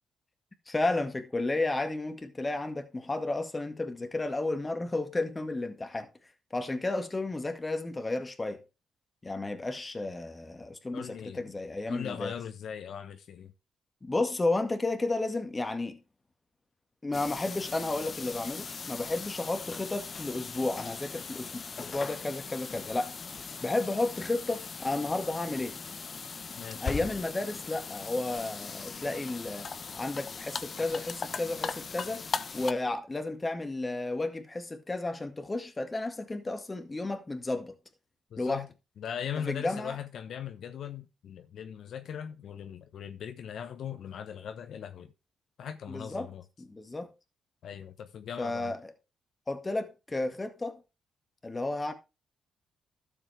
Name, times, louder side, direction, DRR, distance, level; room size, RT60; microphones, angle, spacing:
voice 1, 0.7-6.1 6.5-8.6 9.2-12.3 14.0-16.0 17.0-23.1 23.6-25.8 26.8-29.7 30.0-32.2 32.5-37.7 38.4-38.6 39.5-40.0 45.9-46.3 46.7-47.1 48.4-48.9 49.5-50.8 51.4-51.9, left 2 dB, 20° left, 1.9 m, -32 dB
voice 2, 10.9-11.5 11.9-13.5 26.6-26.9 38.3-38.7 39.0-45.1 45.6-46.4 47.6-48.7, left 8 dB, 70° left, 1.0 m, -39 dB
sound 1, 17.1-32.7, left 5 dB, 40° left, 0.9 m, -39 dB
12.5 x 7.1 x 3.4 m
cardioid pair, 90°, 0 cm